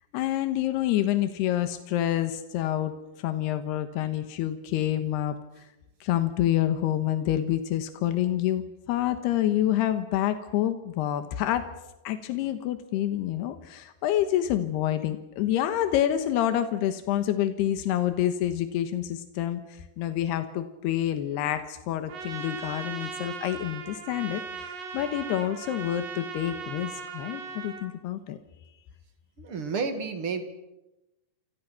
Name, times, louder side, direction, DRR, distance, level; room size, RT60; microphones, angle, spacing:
voice 1, 0.1-2.9 3.2-5.6 6.0-11.7 12.0-28.4, left 12 dB, 90° left, 9 dB, 3.3 m, -27 dB
Trumpet, 22.1-27.9, right 5 dB, 60° right, 3.8 m, -38 dB
voice 2, 29.4-30.4, right 5 dB, 40° right, 8 dB, 2.4 m, -30 dB
28.0 x 26.0 x 6.0 m, 0.97 s
omnidirectional pair, 4.6 m